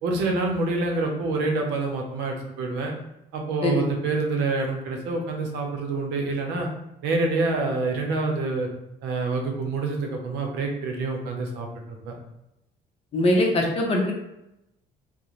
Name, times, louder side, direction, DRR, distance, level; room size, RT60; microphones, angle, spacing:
voice 1, 0.0-2.9 3.3-6.7 7.0-8.7 9.0-11.7 12.0-12.1, right 3 dB, 85° right, 2 dB, 0.6 m, -26 dB
voice 2, 13.1-14.1, left 1 dB, 35° left, 0 dB, 0.6 m, -22 dB
2.4 x 2.1 x 3.0 m, 0.88 s
cardioid pair, 110°, 17 cm